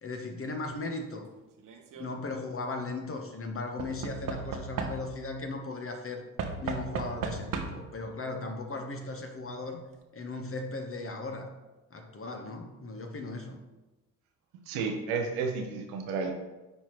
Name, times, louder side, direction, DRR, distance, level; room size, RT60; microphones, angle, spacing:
voice 1, 0.0-1.3 2.0-6.2 6.6-9.8 10.1-11.5 11.9-13.6, left 3 dB, 35° left, 4 dB, 1.2 m, -37 dB
Knock / Wood, 1.6-2.1 3.8-5.3 6.4-8.0 9.0-9.1 9.3-9.4, right 5 dB, 55° right, 1.0 m, -36 dB
voice 2, 14.7-16.3, right 5 dB, 75° right, 3 dB, 1.1 m, -31 dB
9.8 x 4.3 x 3.1 m, 1.1 s
hypercardioid pair, 45°, 40 cm